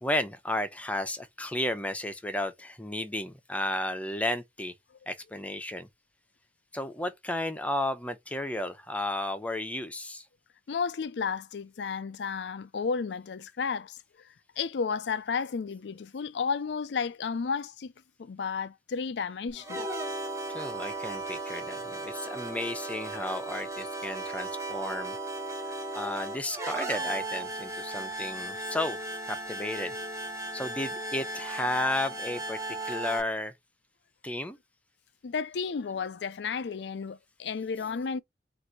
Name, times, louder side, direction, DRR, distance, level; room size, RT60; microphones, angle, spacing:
voice 1, 0.0-4.7 5.1-5.9 6.7-10.2 20.5-25.2 25.9-29.0 29.3-29.9 30.5-33.5 34.2-34.6, left 1 dB, 10° left, 0.7 m, -33 dB
voice 2, 10.7-14.0 14.6-17.9 18.2-19.9 25.6-25.8 35.2-38.2, left 5 dB, 70° left, 0.4 m, -32 dB
sound 1, 19.5-33.2, right 2 dB, 15° right, 1.2 m, -36 dB
3.9 x 2.6 x 4.6 m
head